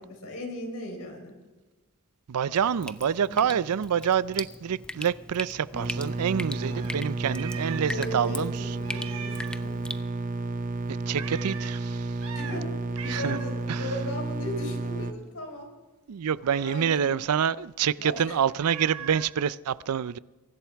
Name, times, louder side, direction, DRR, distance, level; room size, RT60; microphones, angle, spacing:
voice 1, 0.2-1.4 3.3-3.6 6.7-6.8 7.9-9.9 12.3-12.7 13.0-15.7 16.5-17.2 18.0-18.4, left 1 dB, 70° left, 4.1 m, -37 dB
voice 2, 2.3-8.5 11.1-12.2 13.1-13.4 13.7-13.9 16.1-20.2, right 8 dB, 85° right, 0.4 m, -27 dB
Drip, 2.5-10.0, left 1 dB, 5° left, 0.5 m, -40 dB
sound 1, 5.7-15.1, right 2 dB, 40° right, 0.9 m, -32 dB
Meow, 6.6-8.1 8.3-8.4 8.8-9.7 11.2-11.8 12.2-12.6 13.0-13.6 16.4-17.0 18.6-19.3, right 7 dB, 65° right, 1.3 m, -41 dB
23.5 x 11.5 x 3.5 m
head